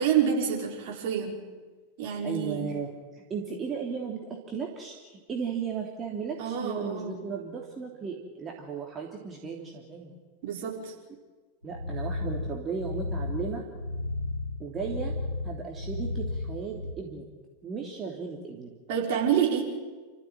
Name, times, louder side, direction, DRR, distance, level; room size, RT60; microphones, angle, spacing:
voice 1, 0.0-1.3 2.0-2.7 6.4-7.1 10.4-10.9 18.9-19.6, right 8 dB, 50° right, -1 dB, 5.7 m, -27 dB
voice 2, 2.2-10.2 11.6-13.6 14.6-15.1 15.4-17.3 17.6-18.7, right 5 dB, 25° right, 0 dB, 3.1 m, -35 dB
sound 1, 11.6-16.9, left 2 dB, 90° right, 1.2 m, -33 dB
29.0 x 14.5 x 9.2 m, 1.4 s
figure-of-eight pair, 90°, 0 cm